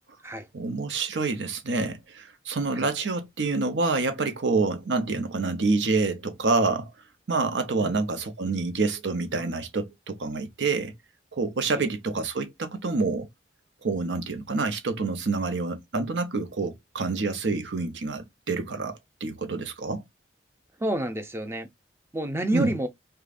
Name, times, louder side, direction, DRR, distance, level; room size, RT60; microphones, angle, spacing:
voice 1, 0.5-6.9 7.3-10.9 11.3-13.3 13.8-20.0 22.5-22.8, right 3 dB, 85° right, 0.7 m, -27 dB
voice 2, 20.8-21.7 22.1-22.9, right 1 dB, 15° right, 0.5 m, -28 dB
5.0 x 2.2 x 2.5 m
head